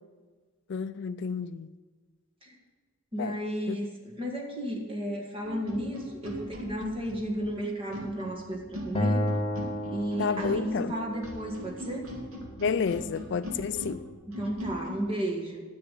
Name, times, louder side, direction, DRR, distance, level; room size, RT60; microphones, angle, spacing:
voice 1, 0.7-1.7 3.2-3.4 3.7-3.8 10.2-11.0 12.6-14.1, left 6 dB, 55° left, 0.3 m, -30 dB
voice 2, 3.1-9.3 9.9-12.1 14.4-15.6, equal, 25° right, 1.9 m, -33 dB
sound 1, 5.4-15.0, equal, 80° right, 2.8 m, -40 dB
Acoustic guitar, 8.9-12.2, equal, 25° left, 0.8 m, -32 dB
10.5 x 7.0 x 8.3 m
head